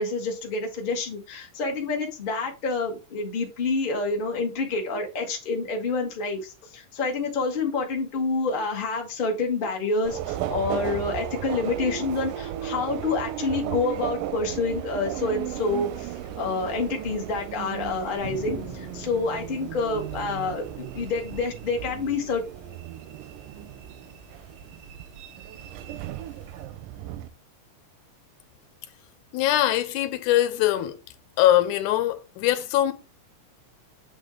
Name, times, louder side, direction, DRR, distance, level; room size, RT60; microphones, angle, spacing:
voice 1, 0.0-22.4, left 3 dB, 60° left, 0.5 m, -28 dB
Subway metro underground, 10.1-27.3, right 12 dB, 90° right, 2.2 m, -35 dB
sound 1, 15.5-26.6, equal, 35° left, 0.9 m, -46 dB
voice 2, 29.3-31.0 31.4-32.9, left 13 dB, 80° left, 2.1 m, -22 dB
8.0 x 3.6 x 3.7 m
omnidirectional pair, 3.7 m